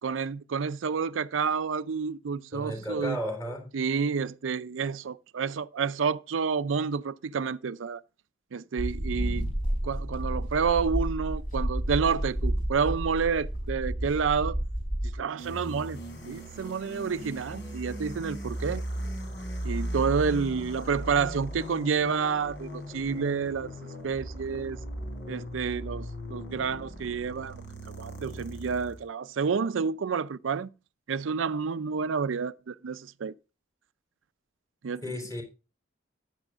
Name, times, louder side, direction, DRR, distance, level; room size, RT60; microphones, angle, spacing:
voice 1, 0.0-3.2 3.7-8.0 8.5-9.5 9.8-14.6 15.0-16.0 16.3-18.8 19.6-23.7 24.0-24.8 25.3-27.6 27.9-30.7 31.1-33.3 34.8-35.0, right 5 dB, 90° right, 0.5 m, -29 dB
voice 2, 2.5-3.7 35.0-35.4, equal, 15° left, 3.5 m, -34 dB
sound 1, 8.8-15.2, right 1 dB, 45° left, 5.2 m, -30 dB
sound 2, 15.4-29.0, equal, 65° left, 3.6 m, -38 dB
14.0 x 10.0 x 2.4 m
head